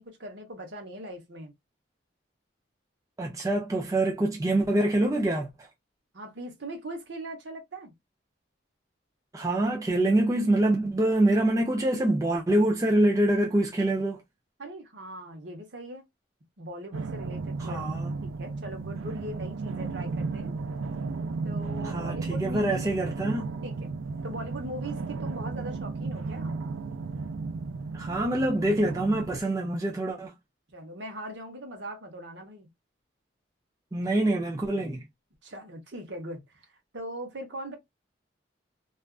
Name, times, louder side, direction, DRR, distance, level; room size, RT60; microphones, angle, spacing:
voice 1, 0.0-1.5 6.1-7.9 14.6-16.0 16.6-17.8 18.2-20.5 21.4-23.0 23.6-23.9 24.2-26.6 30.7-32.7 35.4-36.6 36.9-37.8, right 1 dB, 60° right, 0.9 m, -40 dB
voice 2, 3.2-5.7 9.3-14.2 17.6-18.1 21.8-23.5 27.9-30.3 33.9-35.0, right 1 dB, 15° right, 0.4 m, -25 dB
sound 1, 16.9-29.4, right 4 dB, 90° right, 0.4 m, -34 dB
2.4 x 2.3 x 2.2 m
head